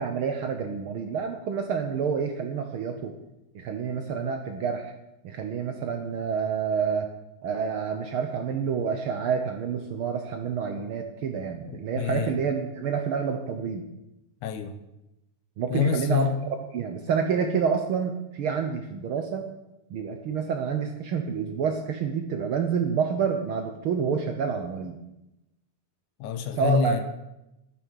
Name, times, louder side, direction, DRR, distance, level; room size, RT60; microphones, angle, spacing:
voice 1, 0.0-3.1 3.5-4.9 5.2-7.1 7.4-13.8 15.6-16.2 16.7-19.5 19.9-25.0 26.6-27.0, right 6 dB, 80° right, 5 dB, 1.2 m, -28 dB
voice 2, 11.7-12.3 14.4-14.8 15.7-16.4 26.2-27.0, left 7 dB, 75° left, 9 dB, 2.3 m, -26 dB
10.5 x 10.0 x 6.4 m, 0.91 s
omnidirectional pair, 3.6 m